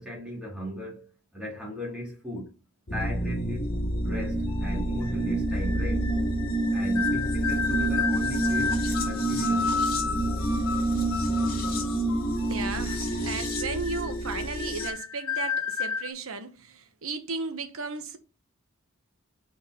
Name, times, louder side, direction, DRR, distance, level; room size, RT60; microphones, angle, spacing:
voice 1, 0.0-2.5 2.9-3.7 4.0-6.1 6.7-8.8 9.1-9.7, equal, 5° right, 2.4 m, -37 dB
sound 1, 2.9-14.9, right 1 dB, 50° left, 1.9 m, -28 dB
sound 2, 4.5-16.1, left 6 dB, 80° left, 1.3 m, -33 dB
voice 2, 12.5-18.2, right 4 dB, 70° right, 1.0 m, -35 dB
5.3 x 4.4 x 4.3 m
head